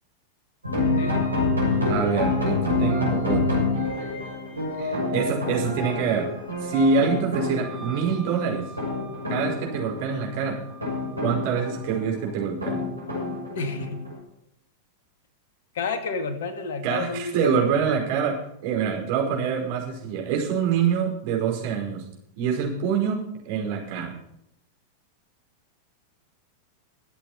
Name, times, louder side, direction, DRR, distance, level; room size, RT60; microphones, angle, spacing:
sound 1, 0.6-14.2, left 3 dB, 80° right, 6.5 m, -27 dB
voice 1, 1.8-3.6 4.8-6.3 6.6-8.6 9.3-10.6 11.2-12.8 16.8-22.0 22.4-24.1, right 6 dB, 50° right, 0 dB, 5.0 m, -25 dB
Wind instrument woodwind instrument, 7.6-12.1, right 4 dB, 25° right, 4.3 m, -46 dB
voice 2, 13.6-14.0 15.7-17.8, left 4 dB, 60° left, 8 dB, 2.2 m, -30 dB
22.5 x 8.5 x 4.3 m, 0.75 s
figure-of-eight pair, 90°, 0 cm